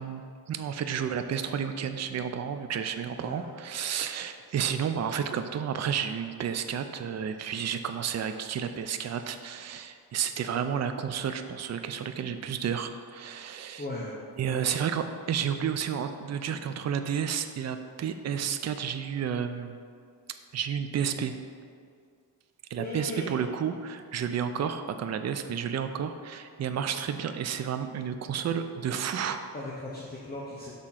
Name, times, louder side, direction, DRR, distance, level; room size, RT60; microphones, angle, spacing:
voice 1, 0.0-13.8 14.4-19.7 20.5-21.4 22.7-29.4, right 8 dB, 40° right, 8 dB, 0.4 m, -31 dB
voice 2, 3.2-3.5 13.8-14.2 14.5-14.7 22.8-23.5 29.5-30.7, left 1 dB, 25° left, -6 dB, 0.8 m, -37 dB
6.6 x 3.6 x 5.7 m, 2.2 s
wide cardioid pair, 130°, 42 cm